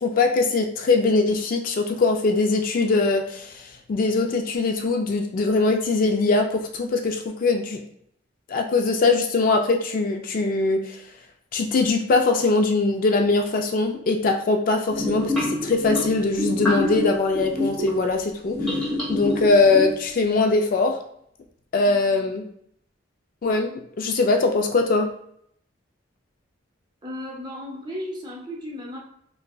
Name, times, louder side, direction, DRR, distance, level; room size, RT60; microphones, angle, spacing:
voice 1, 0.0-7.8 8.5-11.0 11.5-18.6 19.1-21.0 21.7-22.4 23.4-25.1, left 3 dB, 45° left, 4 dB, 0.3 m, -21 dB
sound 1, 14.9-18.0 18.5-20.0, left 1 dB, 5° left, 1.0 m, -27 dB
voice 2, 21.8-22.3 27.0-29.0, left 1 dB, 25° right, -2 dB, 0.6 m, -35 dB
3.0 x 2.6 x 2.2 m, 0.70 s
head